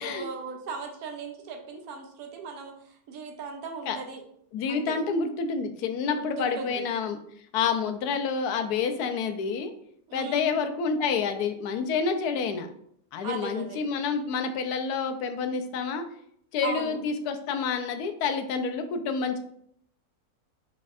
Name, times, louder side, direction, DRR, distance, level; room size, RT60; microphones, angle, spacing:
voice 1, 0.0-4.2 4.7-5.1 6.1-6.8 10.1-10.6 13.2-13.8 16.6-17.0, right 5 dB, 75° right, 3 dB, 1.2 m, -37 dB
voice 2, 4.5-7.2 7.5-9.7 10.1-12.7 13.1-16.0 16.5-19.4, left 5 dB, 85° left, 7 dB, 1.1 m, -28 dB
4.5 x 4.2 x 2.4 m, 0.68 s
omnidirectional pair, 1.6 m